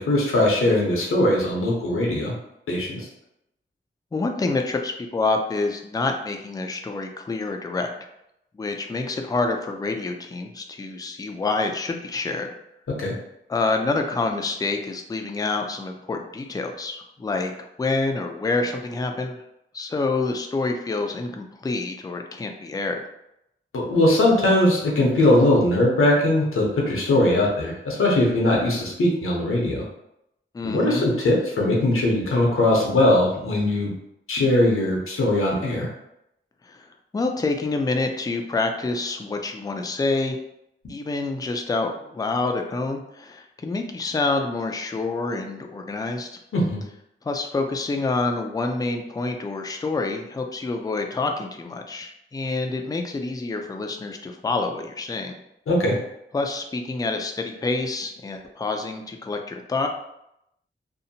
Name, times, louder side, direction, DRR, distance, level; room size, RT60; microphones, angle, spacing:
voice 1, 0.0-2.3 2.7-3.1 13.0-13.1 23.7-29.8 30.6-33.9 34.3-35.9 46.5-46.8 55.7-56.0, left 1 dB, 80° left, -2 dB, 0.7 m, -20 dB
voice 2, 4.1-7.9 8.5-12.5 13.5-17.5 17.8-19.4 19.7-23.0 30.5-31.1 36.6-36.8 37.1-40.4 40.9-46.3 47.2-55.4 56.3-59.9, left 3 dB, 20° left, 4 dB, 0.3 m, -27 dB
2.7 x 2.1 x 2.7 m, 0.82 s
wide cardioid pair, 65°, 21 cm